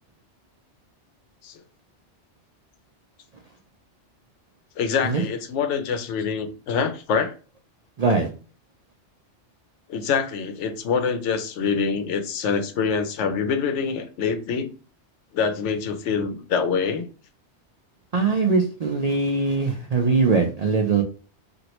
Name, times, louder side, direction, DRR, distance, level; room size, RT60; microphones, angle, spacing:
voice 1, 4.8-7.3 9.9-14.7 15.3-17.1, left 6 dB, 85° left, 8 dB, 0.9 m, -25 dB
voice 2, 8.0-8.3 18.1-21.0, right 4 dB, 65° right, 2 dB, 0.4 m, -21 dB
3.0 x 2.5 x 2.9 m, 0.36 s
omnidirectional pair, 1.2 m